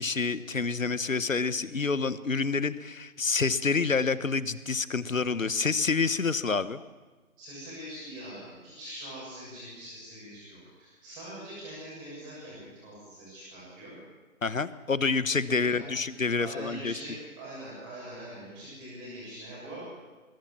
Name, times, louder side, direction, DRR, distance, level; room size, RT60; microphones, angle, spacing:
voice 1, 0.0-6.8 14.4-16.9, left 4 dB, 70° left, 16 dB, 1.2 m, -28 dB
voice 2, 7.4-14.0 15.5-15.8 16.4-19.8, right 1 dB, 10° right, -6 dB, 6.7 m, -43 dB
21.5 x 17.0 x 7.3 m, 1.3 s
figure-of-eight pair, 160°, 41 cm